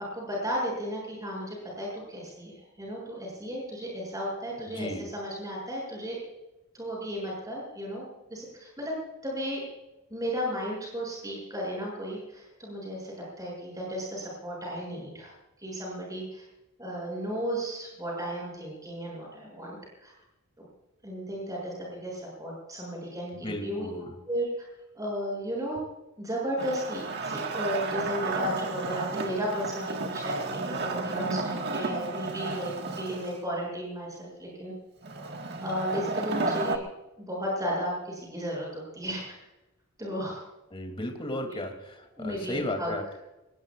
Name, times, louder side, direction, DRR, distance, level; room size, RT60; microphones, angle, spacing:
voice 1, 0.0-6.2 6.7-8.9 9.2-9.6 10.1-16.5 16.8-20.1 20.6-20.7 21.0-23.9 24.3-24.7 24.9-25.8 26.2-34.7 35.6-36.8 37.2-39.3 40.0-40.4 41.4-41.6 42.1-42.9, equal, 15° right, -3 dB, 7.3 m, -34 dB
voice 2, 4.8-5.1 23.4-24.2 40.7-43.2, left 1 dB, 25° left, 4 dB, 2.8 m, -35 dB
Wood, 26.6-33.4 35.0-36.8, right 3 dB, 50° right, 1.7 m, -32 dB
25.0 x 19.5 x 2.5 m, 0.99 s
head